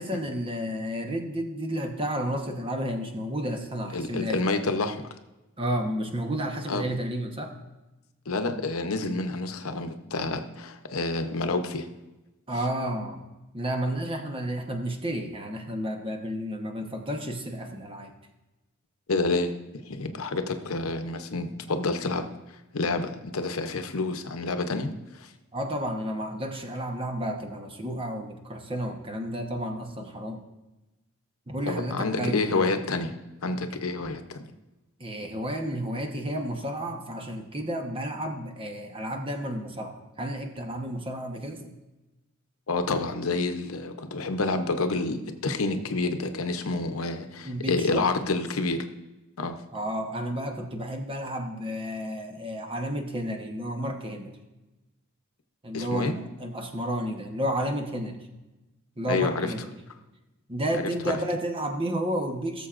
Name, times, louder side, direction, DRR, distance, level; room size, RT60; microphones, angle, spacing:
voice 1, 0.0-4.4 5.6-7.5 12.5-13.2 13.5-18.1 25.5-30.4 31.5-32.4 35.0-41.7 47.4-48.1 49.7-54.4 55.6-58.2 59.0-59.7 60.5-62.7, equal, 25° right, 3 dB, 1.0 m, -31 dB
voice 2, 3.9-5.0 6.7-6.8 8.3-11.9 19.1-19.5 19.8-22.2 22.7-25.3 31.7-33.1 33.4-34.5 42.7-48.8 49.4-49.6 55.7-56.1 59.1-59.5 60.7-61.1, left 3 dB, 75° left, 8 dB, 0.8 m, -28 dB
17.5 x 7.0 x 2.5 m, 1.0 s
head